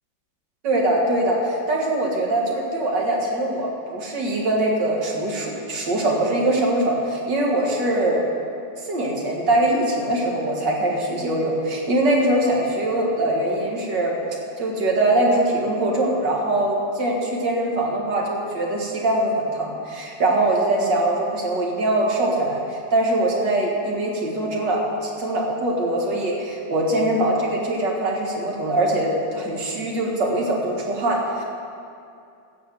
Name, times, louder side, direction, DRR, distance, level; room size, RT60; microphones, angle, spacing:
voice 1, 0.6-8.3 8.8-14.1 14.6-31.4, right 1 dB, 80° right, -2 dB, 2.4 m, -22 dB
15.0 x 5.1 x 7.6 m, 2.5 s
omnidirectional pair, 1.9 m